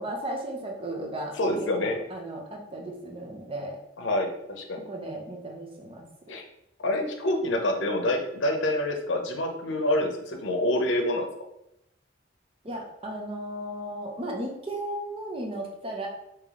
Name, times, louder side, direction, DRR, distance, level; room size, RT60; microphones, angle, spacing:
voice 1, 0.0-3.8 4.9-6.1 12.6-16.1, right 1 dB, 30° right, 0 dB, 0.6 m, -35 dB
voice 2, 1.4-2.0 4.0-4.8 6.3-6.4 6.8-11.3, left 1 dB, 80° left, 4 dB, 0.6 m, -27 dB
3.3 x 2.8 x 3.6 m, 0.82 s
head